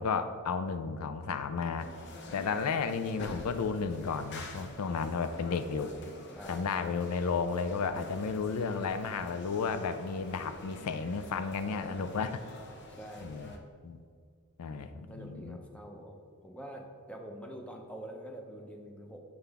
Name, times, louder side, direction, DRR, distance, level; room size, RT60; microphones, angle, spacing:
voice 1, 0.0-1.9 2.3-5.9 6.5-12.4 13.2-13.5 13.8-14.0 14.6-15.6, left 5 dB, 85° left, 10 dB, 0.4 m, -33 dB
sound 1, 1.8-13.6, left 2 dB, 50° left, 0.8 m, -48 dB
voice 2, 6.3-7.0 11.7-12.4 12.9-13.7 15.1-19.2, right 1 dB, 5° left, 2 dB, 0.7 m, -46 dB
7.9 x 5.7 x 3.5 m, 2.2 s
head